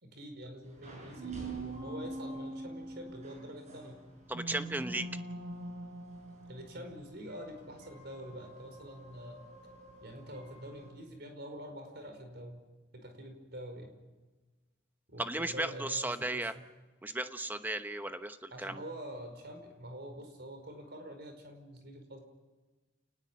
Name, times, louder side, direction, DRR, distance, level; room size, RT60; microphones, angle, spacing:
voice 1, 0.0-4.0 6.5-9.4 10.0-12.6 12.9-13.9 15.1-16.6 18.5-22.2, equal, 55° right, 6 dB, 5.1 m, -46 dB
sound 1, 0.6-10.9, right 2 dB, 35° right, 7.1 m, -45 dB
voice 2, 4.3-5.1 15.2-16.5 17.0-18.8, right 2 dB, 10° right, 9 dB, 0.9 m, -35 dB
28.5 x 19.5 x 7.5 m, 1.3 s
head